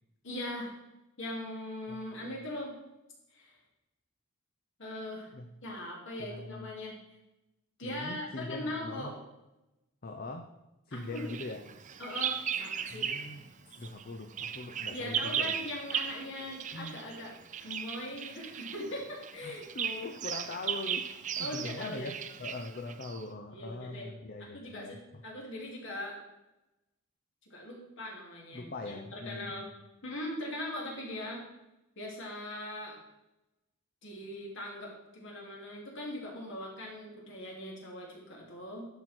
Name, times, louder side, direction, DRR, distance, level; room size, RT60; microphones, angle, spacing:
voice 1, 0.2-0.7 1.2-2.7 3.3-3.6 4.8-5.3 5.6-7.0 7.8-9.2 10.9-11.3 12.0-13.1 14.9-17.3 17.6-19.6 21.4-22.1 23.5-24.1 24.4-26.2 27.5-29.7 30.0-31.4 32.0-33.0 34.0-38.8, left 1 dB, 65° left, -1 dB, 2.7 m, -40 dB
voice 2, 6.2-6.7 7.8-9.1 10.0-10.5 10.9-11.6 12.9-13.5 13.8-15.5 16.7-17.0 19.4-22.1 22.4-25.2 28.5-29.7, left 2 dB, 45° left, 3 dB, 0.7 m, -42 dB
Bird vocalization bird call bird song, 11.2-13.4 13.7-23.2, right 8 dB, 35° right, 0.5 m, -37 dB
10.5 x 6.1 x 4.4 m, 0.96 s
head